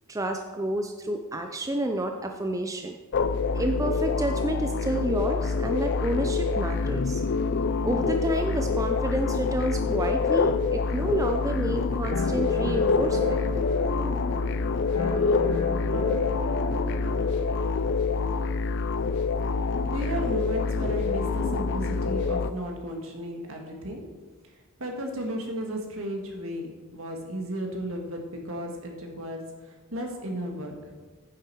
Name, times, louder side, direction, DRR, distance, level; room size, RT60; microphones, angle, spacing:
voice 1, 0.1-3.0 3.5-7.2 7.8-13.4, right 1 dB, 15° right, 5 dB, 0.4 m, -29 dB
sound 1, 3.1-22.5, left 4 dB, 55° left, 0.4 m, -26 dB
sound 2, 12.1-17.8, left 2 dB, 90° left, 1.7 m, -32 dB
voice 2, 19.9-24.0 24.8-30.9, equal, 65° right, 1 dB, 1.7 m, -34 dB
9.7 x 7.8 x 4.6 m, 1.3 s
head